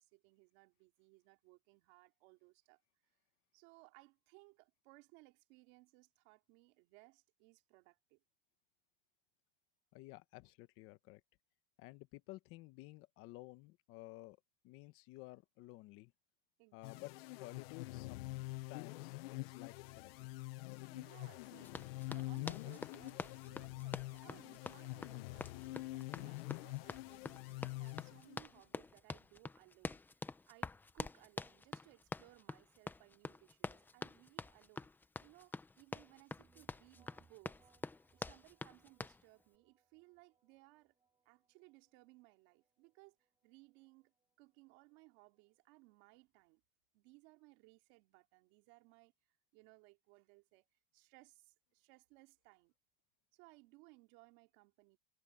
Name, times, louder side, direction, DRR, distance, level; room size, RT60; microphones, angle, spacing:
voice 1, 0.0-2.8 3.5-8.2 16.6-17.1 20.9-34.9 35.2-37.6 38.1-40.9 41.2-43.2 43.4-44.1 44.4-46.6 46.9-49.1 49.5-50.7 50.9-52.7 53.3-55.0, right 25 dB, 55° right, 2.7 m, -64 dB
voice 2, 9.9-11.2 11.8-14.4 14.6-16.1 16.7-18.3 18.7-20.3, left 20 dB, 45° left, 1.1 m, -54 dB
sound 1, 16.8-28.6, left 21 dB, 75° left, 0.6 m, -46 dB
Run, 21.6-39.2, left 3 dB, 5° left, 0.6 m, -47 dB
sound 2, 36.4-46.0, right 5 dB, 15° right, 4.1 m, -75 dB
supercardioid pair, 150°, 30 cm